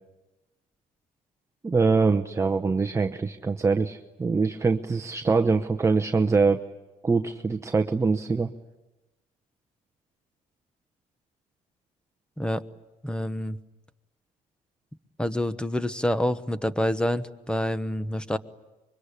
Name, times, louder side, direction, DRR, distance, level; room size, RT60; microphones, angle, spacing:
voice 1, 1.6-6.6 7.0-8.5, right 4 dB, 15° right, 7 dB, 0.9 m, -23 dB
voice 2, 13.0-13.6 15.2-18.4, left 1 dB, 5° left, 13 dB, 1.1 m, -27 dB
25.0 x 23.5 x 10.0 m, 1.1 s
cardioid pair, 110°, 17 cm